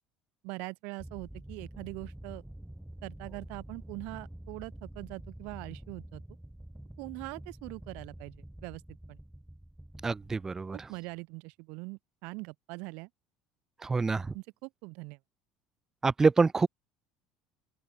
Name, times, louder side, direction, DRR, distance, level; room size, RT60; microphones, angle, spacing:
voice 1, 0.4-2.4 3.0-6.2 7.0-8.8 9.1-9.2 10.7-13.1 14.3-15.2, right 29 dB, 70° right, 3.5 m, -42 dB
sound 1, 1.0-11.1, right 1 dB, 5° right, 1.5 m, -48 dB
voice 2, 10.0-10.8 13.8-14.3 16.0-16.7, right 4 dB, 20° right, 0.5 m, -26 dB
open air
hypercardioid pair, 75°, 2 cm